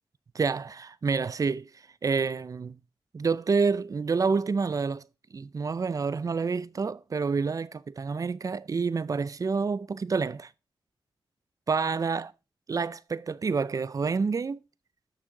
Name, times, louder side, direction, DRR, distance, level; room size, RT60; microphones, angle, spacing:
voice 1, 0.3-1.7 2.0-2.8 3.1-5.0 5.3-10.5 11.7-12.3 12.7-14.6, right 5 dB, 40° right, 0.4 m, -28 dB
6.5 x 6.2 x 4.5 m
cardioid pair, 70°, 9 cm